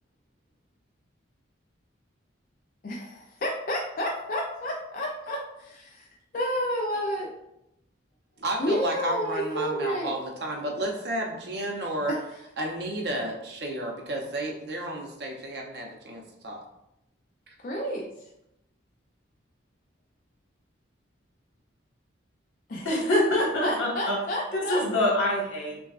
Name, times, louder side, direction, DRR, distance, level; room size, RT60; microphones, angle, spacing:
voice 1, 2.8-6.1 6.3-7.3 8.6-10.1 12.1-12.2 17.6-18.1 22.7-22.9 23.3-24.8, equal, 45° left, -1 dB, 0.4 m, -30 dB
voice 2, 8.4-12.1 12.6-16.6, right 1 dB, 55° right, 1 dB, 0.7 m, -32 dB
voice 3, 22.8-24.2 24.5-25.8, left 1 dB, 85° left, -4 dB, 1.4 m, -25 dB
5.9 x 2.2 x 2.4 m, 0.84 s
head